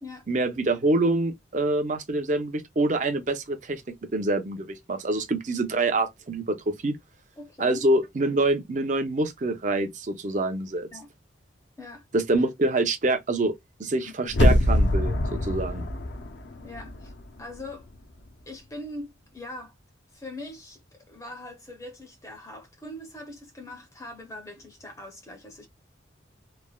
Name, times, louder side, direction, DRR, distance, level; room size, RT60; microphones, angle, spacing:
voice 1, 0.3-3.8 4.1-7.0 7.6-10.9 12.1-13.5 13.8-15.8, right 2 dB, 40° right, 0.5 m, -26 dB
voice 2, 7.4-7.8 10.9-11.1 11.8-12.0 14.1-14.4 16.6-17.1 17.4-17.9 18.5-19.7 20.1-20.8 21.1-25.7, left 1 dB, 15° left, 0.6 m, -41 dB
sound 1, 14.3-17.2 17.6-17.7, left 1 dB, 60° left, 0.5 m, -24 dB
3.1 x 2.1 x 2.2 m
head